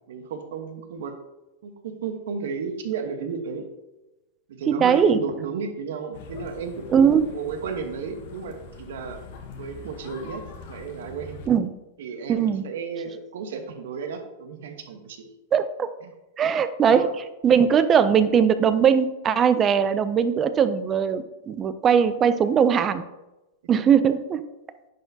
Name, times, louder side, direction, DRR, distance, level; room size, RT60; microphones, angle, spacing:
voice 1, 0.1-1.2 1.6-3.7 4.5-6.9 7.2-9.2 9.6-11.4 12.0-15.3 16.9-17.1, right 5 dB, 75° right, 6 dB, 1.0 m, -33 dB
voice 2, 4.7-5.2 6.9-7.3 11.5-11.7 12.3-12.6 15.5-15.9 16.4-17.1 17.4-23.0 23.7-24.4, right 7 dB, 20° right, 12 dB, 0.3 m, -20 dB
sound 1, 6.1-11.5, left 4 dB, 55° left, 1.0 m, -43 dB
10.0 x 4.3 x 2.7 m, 0.99 s
supercardioid pair, 155°, 0 cm